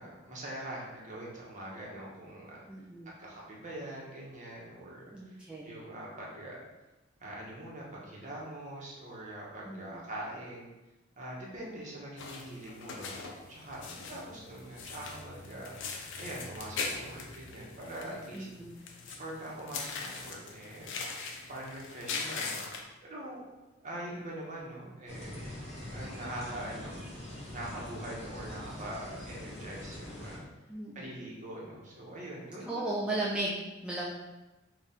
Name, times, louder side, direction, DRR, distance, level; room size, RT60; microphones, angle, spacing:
voice 1, 0.0-2.6 3.2-5.4 5.6-6.6 7.2-10.7 11.2-13.8 14.1-15.8 16.1-18.5 18.8-21.0 21.5-23.4 23.8-25.4 25.9-27.0 27.5-30.4 30.9-33.0, right 1 dB, 40° right, -4 dB, 1.0 m, -43 dB
voice 2, 2.7-3.1 5.1-5.7 9.7-10.0 13.9-14.0 18.3-18.8 30.7-31.1 32.6-34.1, right 1 dB, 5° right, -6 dB, 0.3 m, -36 dB
sound 1, 12.2-22.8, left 4 dB, 60° left, 0.5 m, -41 dB
sound 2, 25.1-30.4, left 1 dB, 35° left, 1.1 m, -43 dB
3.6 x 2.4 x 4.1 m, 1.1 s
head